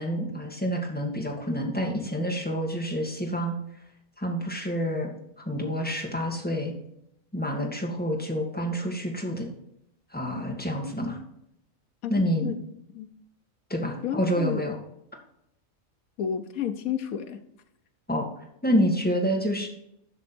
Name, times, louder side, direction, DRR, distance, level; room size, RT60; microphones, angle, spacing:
voice 1, 0.0-3.5 4.2-5.1 5.5-6.7 7.3-9.5 10.1-11.2 12.1-12.5 13.7-14.8 18.1-18.3 18.6-19.7, equal, 5° left, 1.9 m, -28 dB
voice 2, 14.0-14.6 16.2-17.4, left 9 dB, 75° left, 1.3 m, -31 dB
11.5 x 6.2 x 4.5 m
omnidirectional pair, 1.5 m